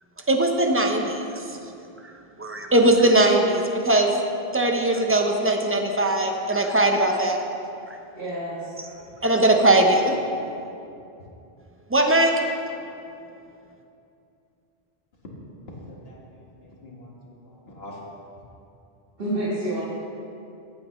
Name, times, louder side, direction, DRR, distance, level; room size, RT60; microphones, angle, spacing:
voice 1, 0.3-1.2 2.4-4.1 4.5-7.4 9.2-10.1 11.9-12.3, right 1 dB, 15° right, 3 dB, 0.7 m, -20 dB
voice 2, 8.1-9.0 19.2-19.8, right 1 dB, 65° right, -8 dB, 1.9 m, -29 dB
voice 3, 10.3-10.7 15.9-18.0, left 1 dB, 70° left, -3 dB, 1.9 m, -45 dB
14.5 x 8.7 x 3.1 m, 2.7 s
omnidirectional pair, 1.1 m